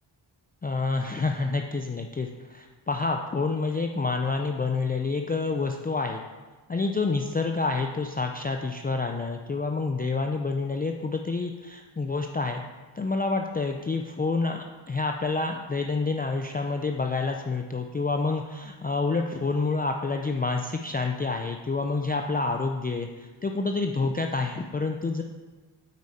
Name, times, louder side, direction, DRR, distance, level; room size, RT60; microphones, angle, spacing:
voice 1, 0.6-6.2 6.7-12.6 12.9-25.2, left 3 dB, 20° left, 3 dB, 0.4 m, -28 dB
8.2 x 4.9 x 4.2 m, 1.3 s
wide cardioid pair, 80°, 48 cm